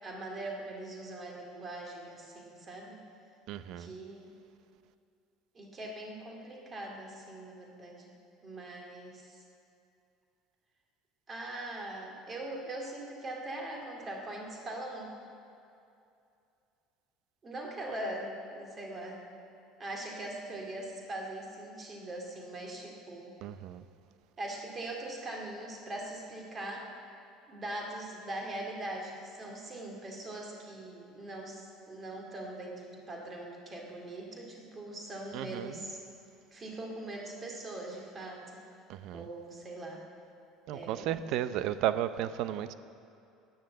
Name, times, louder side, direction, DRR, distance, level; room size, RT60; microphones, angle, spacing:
voice 1, 0.0-3.0 3.8-4.3 5.5-8.1 8.4-9.4 11.3-15.1 17.4-19.2 19.8-23.3 24.4-26.9 27.5-31.6 31.9-36.0 36.5-38.5 39.1-40.0 40.7-41.2, right 1 dB, 20° right, 0 dB, 2.2 m, -41 dB
voice 2, 3.5-3.9 23.4-23.8 35.3-35.8 38.9-39.3 40.7-42.7, right 11 dB, 55° right, 13 dB, 0.6 m, -34 dB
14.0 x 10.5 x 7.6 m, 2.6 s
cardioid pair, 170°, 0 cm